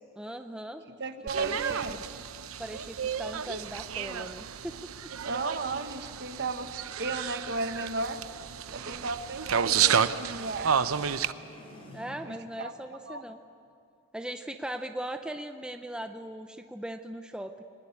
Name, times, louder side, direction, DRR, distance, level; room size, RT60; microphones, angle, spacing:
voice 1, 0.2-0.8 1.4-1.6 1.9-2.0 2.6-4.9 9.6-10.0 11.9-13.4 14.1-17.6, right 1 dB, 5° right, 6 dB, 0.7 m, -39 dB
voice 2, 1.0-2.0 5.2-8.2 8.7-10.8 12.3-12.7 13.0-13.2, right 3 dB, 55° right, 8 dB, 1.4 m, -34 dB
sound 1, 1.3-11.3, right 7 dB, 85° right, 0.7 m, -31 dB
sound 2, 9.5-12.7, equal, 30° left, 4.1 m, -54 dB
23.5 x 20.5 x 8.5 m, 2.5 s
head